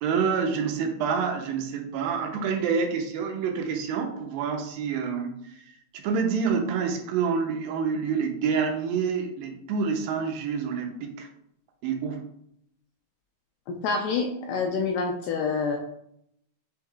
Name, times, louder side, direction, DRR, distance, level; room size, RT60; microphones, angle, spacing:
voice 1, 0.0-5.3 5.9-11.3 11.8-12.2, right 6 dB, 85° right, 3 dB, 2.4 m, -27 dB
voice 2, 13.7-15.8, left 4 dB, 80° left, 2 dB, 1.9 m, -27 dB
6.2 x 3.5 x 2.3 m, 0.73 s
omnidirectional pair, 4.1 m